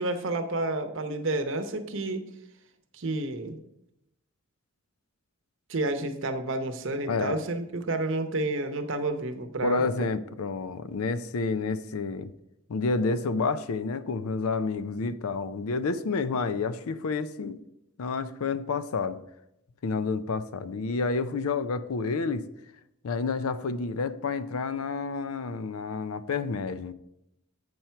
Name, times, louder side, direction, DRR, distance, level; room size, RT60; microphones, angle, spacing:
voice 1, 0.0-2.2 2.9-3.6 5.7-9.9, right 2 dB, 60° right, 7 dB, 0.8 m, -30 dB
voice 2, 7.1-7.4 9.6-12.3 12.7-17.6 18.0-19.2 19.8-22.5 23.0-26.9, left 4 dB, 80° left, 14 dB, 0.5 m, -29 dB
7.8 x 4.5 x 5.6 m, 0.83 s
head